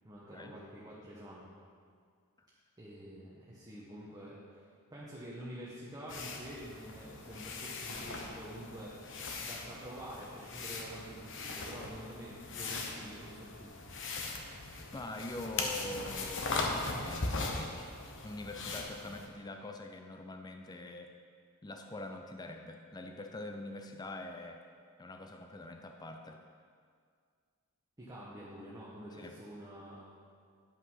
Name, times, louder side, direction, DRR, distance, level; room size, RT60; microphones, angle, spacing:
voice 1, 0.0-1.5 2.8-9.1 9.4-13.7 28.0-30.1, equal, 15° right, -7 dB, 1.2 m, -47 dB
sound 1, 6.1-19.3, left 3 dB, 60° left, 1.0 m, -40 dB
voice 2, 14.9-17.6 18.2-21.1 21.6-24.6 25.0-26.4 29.2-29.4, left 2 dB, 20° left, 4 dB, 0.4 m, -44 dB
10.5 x 5.5 x 5.6 m, 2.1 s
head